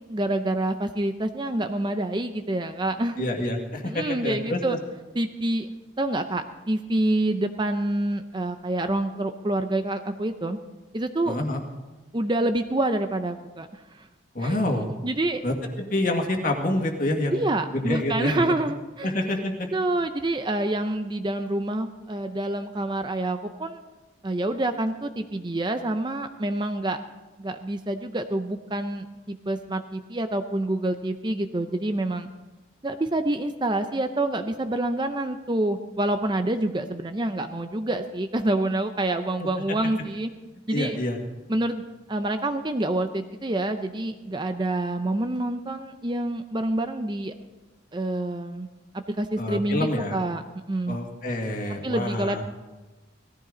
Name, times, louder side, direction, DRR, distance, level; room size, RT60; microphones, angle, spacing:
voice 1, 0.1-3.3 3.8-4.8 5.2-10.6 10.9-11.4 12.1-13.7 13.9-14.1 14.4-14.6 15.0-15.4 17.3-19.1 19.7-23.8 24.2-27.0 27.4-32.3 32.8-40.3 40.7-41.0 41.5-41.8 42.1-47.3 47.9-48.7 48.9-50.4 50.7-51.0 51.8-52.4, right 1 dB, 25° right, 8 dB, 0.5 m, -27 dB
voice 2, 3.2-4.6 11.3-11.6 14.3-14.9 15.4-15.5 15.9-17.4 17.7-18.4 19.0-19.7 40.7-41.2 49.4-50.2 50.9-52.4, left 1 dB, 45° left, 2 dB, 2.0 m, -27 dB
18.0 x 14.5 x 3.9 m, 1.2 s
head